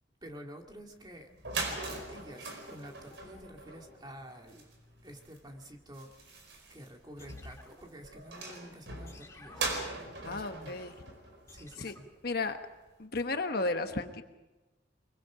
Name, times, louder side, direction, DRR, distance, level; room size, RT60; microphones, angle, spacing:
voice 1, 0.2-4.7 5.0-6.1 6.7-9.6 10.2-10.7 11.5-12.1, equal, 25° right, 2 dB, 2.4 m, -49 dB
sound 1, 1.0-1.1 1.3-12.1, right 3 dB, 70° right, 4.8 m, -41 dB
sound 2, 7.2-8.5 9.1-10.6 11.5-12.2, left 2 dB, 15° left, 1.6 m, -54 dB
voice 2, 10.2-10.9 11.8-11.9 12.2-12.6 13.0-14.2, left 3 dB, 55° left, 7 dB, 1.2 m, -33 dB
24.0 x 22.5 x 5.0 m, 1.1 s
head